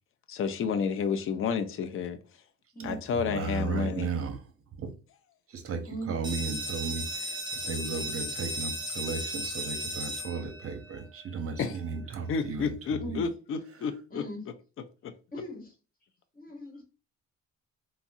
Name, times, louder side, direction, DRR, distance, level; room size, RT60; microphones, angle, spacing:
voice 1, 0.3-2.2 2.8-4.1 11.6-11.7 12.3-14.2 15.0-15.1, left 6 dB, 45° left, 0.5 m, -30 dB
voice 2, 2.8-4.4 4.8-4.9 5.5-12.8 13.1-13.2, right 5 dB, 50° right, 0.7 m, -35 dB
sound 1, 6.2-11.7, equal, 15° right, 1.0 m, -36 dB
voice 3, 14.1-14.4 15.3-15.7 16.3-16.8, right 1 dB, 30° left, 1.2 m, -39 dB
3.5 x 2.0 x 2.6 m
cardioid pair, 90°, 30 cm